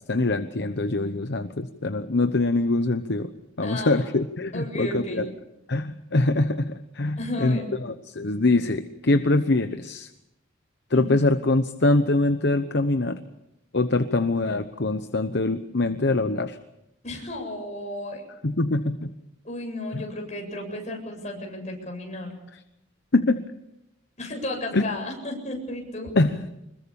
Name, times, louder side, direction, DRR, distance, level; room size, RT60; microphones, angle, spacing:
voice 1, 0.0-3.3 3.6-5.2 5.7-10.1 10.9-13.2 13.7-16.6 18.4-19.1 19.9-20.0 23.1-23.4 24.7-24.8 26.1-26.4, left 2 dB, 55° left, 9 dB, 1.0 m, -24 dB
voice 2, 3.6-4.1 4.5-5.2 7.2-7.7 10.9-11.0 17.0-18.2 19.4-22.3 24.2-26.1, left 1 dB, 35° left, 2 dB, 7.7 m, -33 dB
25.5 x 21.5 x 7.1 m, 0.87 s
head